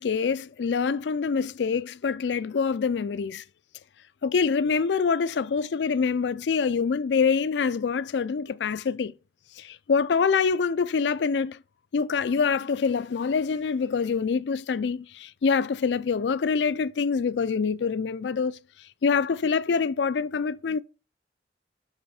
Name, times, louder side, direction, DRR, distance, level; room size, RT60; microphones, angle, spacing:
voice 1, 0.0-3.4 4.2-9.1 9.6-11.6 11.9-18.6 19.0-20.8, left 5 dB, 80° left, 0.4 m, -25 dB
6.1 x 5.5 x 4.9 m
head